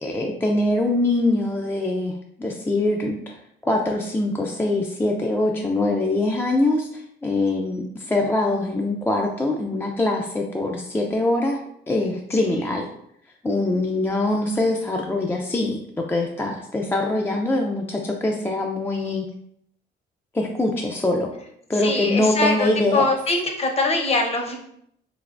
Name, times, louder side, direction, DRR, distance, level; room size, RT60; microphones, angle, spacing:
voice 1, 0.0-2.1 2.4-3.4 3.6-11.6 11.9-12.9 13.4-19.3 20.3-21.3 21.7-23.0, left 2 dB, 10° left, 0 dB, 0.3 m, -23 dB
voice 2, 12.3-12.7 21.7-24.5, left 2 dB, 30° left, 2 dB, 0.7 m, -23 dB
3.3 x 2.9 x 2.5 m, 0.71 s
cardioid pair, 90°, 20 cm